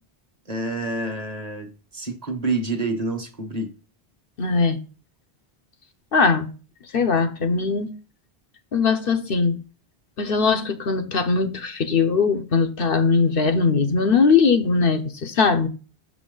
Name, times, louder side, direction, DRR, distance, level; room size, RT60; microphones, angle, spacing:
voice 1, 0.5-3.7, right 2 dB, 40° right, 1.3 m, -28 dB
voice 2, 4.4-4.8 6.1-6.5 6.9-7.9 8.7-9.6 10.2-15.7, left 5 dB, 65° left, 1.0 m, -20 dB
6.8 x 6.2 x 3.8 m
omnidirectional pair, 1.0 m